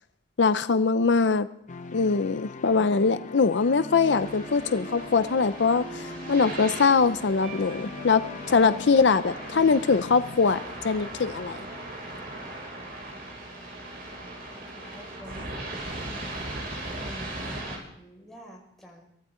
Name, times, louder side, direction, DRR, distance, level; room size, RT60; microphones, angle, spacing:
voice 1, 0.4-1.5 1.9-8.2 8.5-10.6 10.8-11.6, left 4 dB, 70° left, 12 dB, 0.6 m, -22 dB
sound 1, 1.7-10.4, left 3 dB, 45° left, 0.8 m, -41 dB
sound 2, 3.5-9.3, right 3 dB, 90° right, 3.3 m, -44 dB
sound 3, 4.1-17.8, right 1 dB, 55° right, 6.1 m, -39 dB
voice 2, 14.5-16.0 17.0-19.1, equal, ahead, -3 dB, 5.6 m, -48 dB
23.5 x 15.5 x 3.8 m, 0.76 s
head